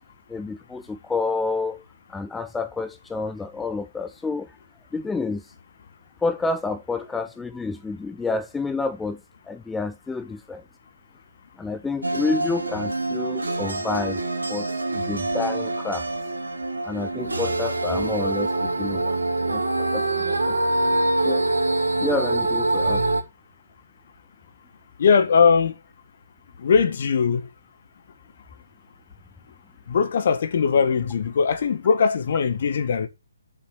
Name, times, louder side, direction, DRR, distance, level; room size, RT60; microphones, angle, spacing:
voice 1, 0.3-1.8 2.1-4.5 4.9-5.5 6.2-9.2 9.5-10.6 11.6-14.2 14.5-16.1 16.8-19.2 19.5-20.6 20.8-21.0 21.2-21.5 22.0-23.1, left 3 dB, 5° left, 0.6 m, -29 dB
sound 1, 12.0-23.2, right 2 dB, 80° right, 2.8 m, -25 dB
voice 2, 25.0-25.8 26.6-27.5 29.9-33.1, left 6 dB, 50° left, 1.7 m, -20 dB
7.6 x 6.8 x 6.6 m
figure-of-eight pair, 135°, 0 cm